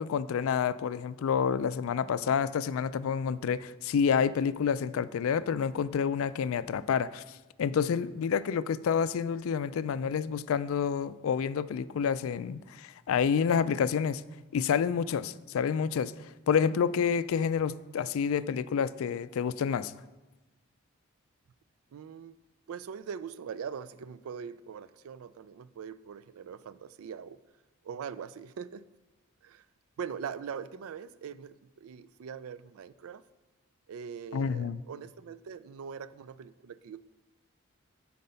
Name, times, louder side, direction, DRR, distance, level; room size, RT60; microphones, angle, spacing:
voice 1, 0.0-7.2 7.6-14.2 14.5-16.1 16.5-19.9 34.3-34.8, left 7 dB, 75° left, 16 dB, 0.3 m, -28 dB
voice 2, 21.9-22.4 22.7-27.4 27.8-28.9 29.4-29.7 30.0-33.2 33.9-37.1, right 7 dB, 80° right, 15 dB, 0.3 m, -42 dB
9.4 x 4.2 x 5.5 m, 1.1 s
head